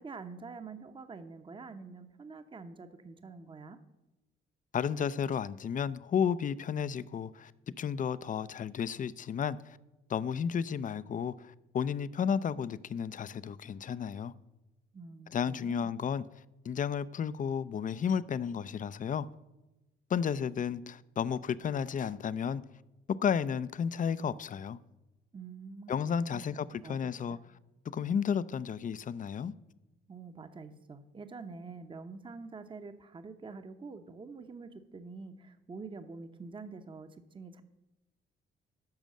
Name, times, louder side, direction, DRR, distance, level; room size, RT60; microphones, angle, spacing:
voice 1, 0.0-3.8 14.9-15.9 25.3-27.4 30.1-37.6, right 4 dB, 25° right, 0.8 m, -46 dB
voice 2, 4.7-7.5 7.8-9.8 10.1-14.3 15.3-16.2 16.6-19.3 20.1-22.6 23.1-24.8 25.9-27.4 27.9-29.5, left 7 dB, 40° left, 0.5 m, -32 dB
10.5 x 6.2 x 7.6 m
cardioid pair, 90°, 20 cm